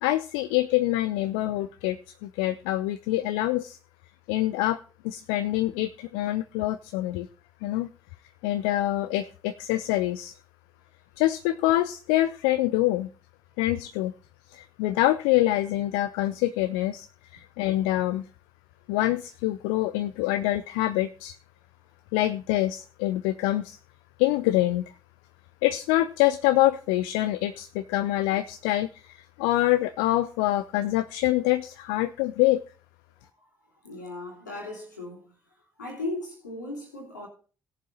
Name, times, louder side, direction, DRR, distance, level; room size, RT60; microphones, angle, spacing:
voice 1, 0.0-3.8 4.3-4.8 5.0-7.3 7.6-7.9 8.4-10.3 11.2-13.1 13.6-14.1 14.5-17.1 17.3-18.2 18.9-21.4 22.1-23.8 24.2-24.8 25.6-32.6, left 15 dB, 65° left, 0.5 m, -25 dB
voice 2, 33.8-35.4 35.8-37.3, left 2 dB, 85° left, 3.0 m, -37 dB
17.5 x 7.2 x 4.0 m
figure-of-eight pair, 45°, 10 cm